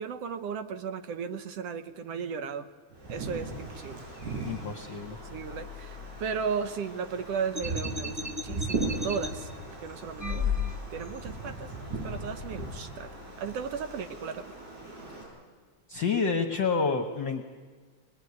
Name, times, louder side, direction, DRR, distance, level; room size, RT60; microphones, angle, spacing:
voice 1, 0.0-2.7 3.1-4.0 4.9-5.0 5.3-9.5 9.8-10.6 10.9-11.7 12.0-14.6, right 6 dB, 65° right, 10 dB, 1.7 m, -35 dB
Wind, 2.9-15.2, right 2 dB, 85° right, 9.3 m, -39 dB
voice 2, 4.4-5.2 15.9-17.4, left 5 dB, 55° left, 5 dB, 1.5 m, -28 dB
sound 1, 7.5-9.3 10.2-11.1, left 3 dB, 15° right, 0.5 m, -32 dB
24.5 x 21.0 x 9.6 m, 1.6 s
omnidirectional pair, 3.3 m